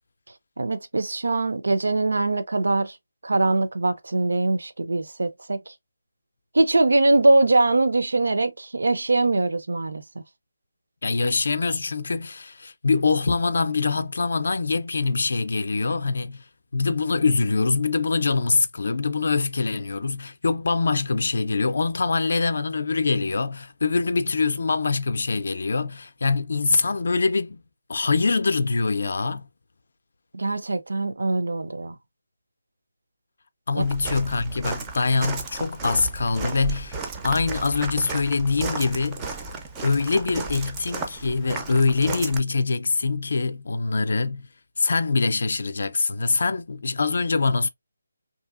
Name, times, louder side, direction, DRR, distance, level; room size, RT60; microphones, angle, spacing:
voice 1, 0.6-3.0 3.2-5.7 6.5-10.2 30.3-32.0 33.7-33.8, right 2 dB, 85° right, 0.5 m, -22 dB
voice 2, 11.0-16.4 16.7-27.6 27.9-29.5 33.7-39.3 39.8-44.5 44.8-47.7, left 4 dB, 60° left, 0.4 m, -24 dB
Walk footsteps, 33.8-42.4, right 4 dB, 10° right, 0.4 m, -34 dB
2.7 x 2.6 x 2.3 m
hypercardioid pair, 175°, 0 cm